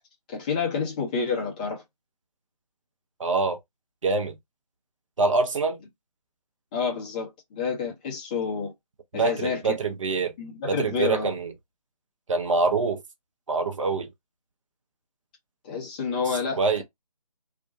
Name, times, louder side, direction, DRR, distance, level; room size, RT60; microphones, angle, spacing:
voice 1, 0.3-1.8 6.7-8.7 9.1-9.8 10.4-11.3 15.6-16.8, left 5 dB, 10° left, 0.6 m, -29 dB
voice 2, 3.2-3.6 4.0-4.4 5.2-5.8 9.1-10.3 10.7-11.5 12.3-13.0 13.5-14.1 16.6-16.8, right 4 dB, 50° right, 0.7 m, -25 dB
2.4 x 2.1 x 2.6 m
figure-of-eight pair, 150°, 20 cm